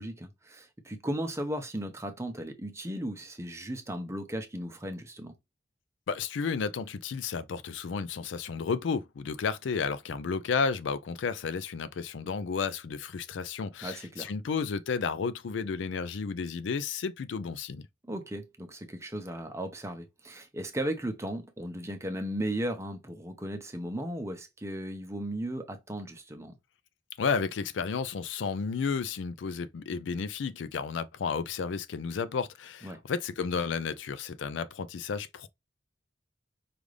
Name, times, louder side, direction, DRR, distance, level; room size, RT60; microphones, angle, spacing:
voice 1, 0.0-5.3 13.8-14.3 18.1-26.5 32.8-33.0, right 1 dB, 15° right, 0.7 m, -36 dB
voice 2, 6.1-17.8 27.2-35.5, left 5 dB, 85° left, 0.4 m, -32 dB
5.1 x 2.5 x 3.2 m
head